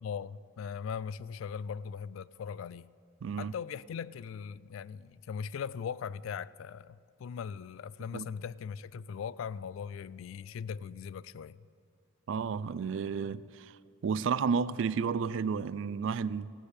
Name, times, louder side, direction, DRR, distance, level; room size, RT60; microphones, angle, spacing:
voice 1, 0.0-2.9 3.4-11.7, left 7 dB, 75° left, 0.3 m, -39 dB
voice 2, 3.2-3.5 8.1-8.3 12.3-13.4 14.0-16.5, right 6 dB, 65° right, 0.3 m, -31 dB
15.5 x 6.5 x 8.3 m
head